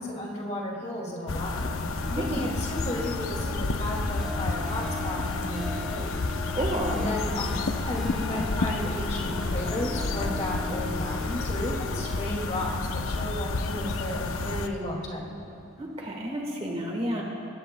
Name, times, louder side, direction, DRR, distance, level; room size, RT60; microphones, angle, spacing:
voice 1, 0.0-1.7 2.2-6.1 6.9-15.6, left 1 dB, 30° left, -2 dB, 2.2 m, -34 dB
sound 1, 1.3-14.7, left 3 dB, 75° left, 0.7 m, -30 dB
Harp, 1.5-14.2 14.7-15.1 15.5-15.6, left 1 dB, ahead, 1.4 m, -41 dB
voice 2, 2.0-2.5 6.4-7.0 15.8-17.2, equal, 25° right, 0 dB, 1.3 m, -31 dB
22.0 x 17.5 x 2.2 m, 2.8 s
head